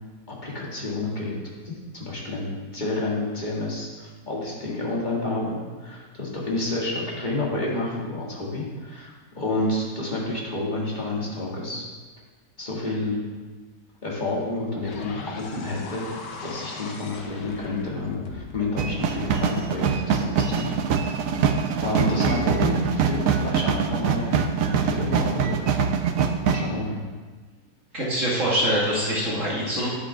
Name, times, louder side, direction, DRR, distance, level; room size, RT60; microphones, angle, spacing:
voice 1, 0.3-1.4 1.6-11.8 12.6-13.2 14.0-16.1 16.4-21.0 21.8-25.7 26.5-27.0, left 2 dB, 25° left, -4 dB, 2.2 m, -29 dB
sound 1, 14.8-21.1, left 3 dB, 80° left, 1.7 m, -39 dB
sound 2, 18.8-26.6, right 6 dB, 65° right, 0.9 m, -24 dB
voice 2, 27.9-29.9, equal, 45° right, -6 dB, 2.1 m, -24 dB
10.0 x 9.1 x 3.5 m, 1.4 s
omnidirectional pair, 1.9 m